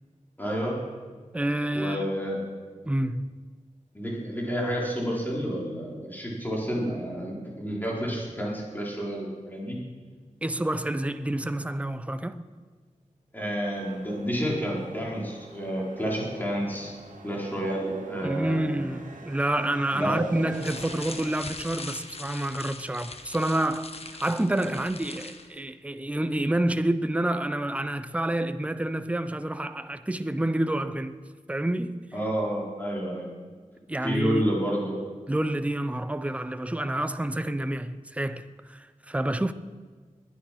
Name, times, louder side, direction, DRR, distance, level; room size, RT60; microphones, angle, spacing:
voice 1, 0.4-0.8 1.7-2.4 3.9-9.8 13.3-16.9 17.2-18.7 19.9-20.2 32.1-33.3 34.0-35.0, equal, 15° left, 4.4 m, -30 dB
voice 2, 1.3-2.1 2.8-3.4 10.4-12.4 18.2-23.9 24.2-32.1 33.9-34.4 35.3-39.5, right 1 dB, 10° right, 0.6 m, -28 dB
sound 1, 13.7-21.3, right 2 dB, 75° right, 1.9 m, -42 dB
sound 2, 20.5-25.5, left 3 dB, 50° left, 1.2 m, -41 dB
20.0 x 10.5 x 6.0 m
wide cardioid pair, 90°, 13 cm